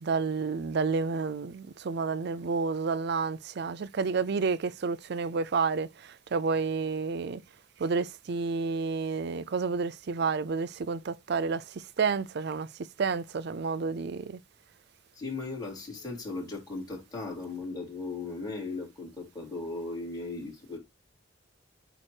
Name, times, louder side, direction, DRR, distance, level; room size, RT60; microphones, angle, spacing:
voice 1, 0.0-7.4 7.8-12.7 13.0-14.4, right 4 dB, 55° right, 0.5 m, -30 dB
voice 2, 15.1-20.8, left 3 dB, 20° left, 3.7 m, -37 dB
8.6 x 3.0 x 4.5 m
head